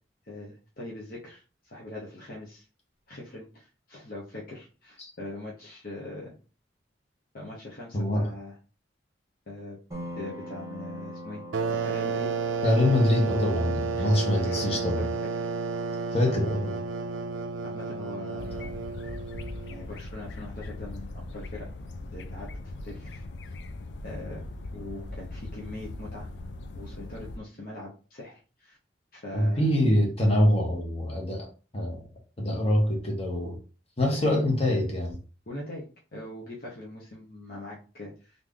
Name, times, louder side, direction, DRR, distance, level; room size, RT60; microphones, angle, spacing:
voice 1, 0.3-2.6 3.1-6.3 7.3-8.6 9.5-9.8 10.1-11.4 11.8-12.3 14.0-15.1 17.6-18.8 19.7-22.5 22.8-23.2 24.0-24.4 24.7-26.3 26.7-28.8 29.1-29.7 34.1-34.4 35.5-35.8 36.1-38.3, left 1 dB, 50° left, 0.8 m, -41 dB
voice 2, 7.9-8.3 12.6-15.0 16.1-16.8 29.3-31.5 31.7-32.0 32.4-33.6 34.0-35.2, left 1 dB, 30° left, 1.2 m, -24 dB
sound 1, 9.9-23.2, equal, 20° right, 1.1 m, -44 dB
sound 2, 11.5-19.9, right 5 dB, 85° right, 0.4 m, -32 dB
sound 3, 18.4-27.4, left 2 dB, 65° left, 0.4 m, -40 dB
3.2 x 2.6 x 3.6 m
head